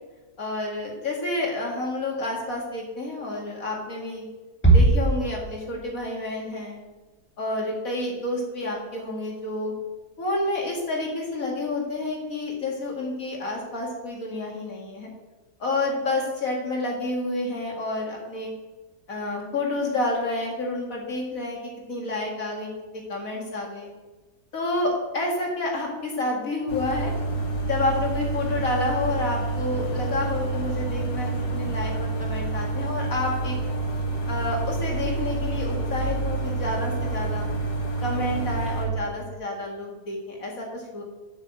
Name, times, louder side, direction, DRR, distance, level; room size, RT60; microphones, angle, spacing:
voice 1, 0.4-4.3 4.7-6.8 7.4-9.7 10.2-15.1 15.6-18.5 19.1-23.9 24.5-27.1 27.7-33.6 34.3-37.5 38.0-41.0, left 2 dB, 60° left, -1 dB, 2.3 m, -29 dB
Bass drum, 4.6-6.0, right 2 dB, 10° left, 1.4 m, -20 dB
sound 1, 26.7-38.9, right 3 dB, 80° left, 2.4 m, -28 dB
7.4 x 6.5 x 7.5 m, 1.2 s
omnidirectional pair, 1.7 m